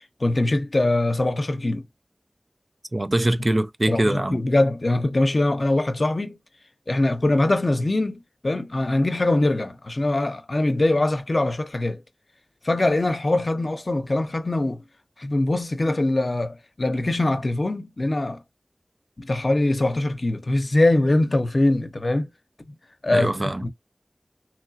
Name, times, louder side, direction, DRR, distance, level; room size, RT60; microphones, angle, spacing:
voice 1, 0.2-1.8 3.9-6.4 6.9-12.0 12.6-14.8 15.2-18.4 19.2-22.3 23.0-23.3 23.6-23.7, left 2 dB, 65° left, 0.6 m, -22 dB
voice 2, 2.9-4.4 23.1-23.7, right 1 dB, 45° right, 0.4 m, -23 dB
3.0 x 2.9 x 2.6 m
wide cardioid pair, 45°, 0 cm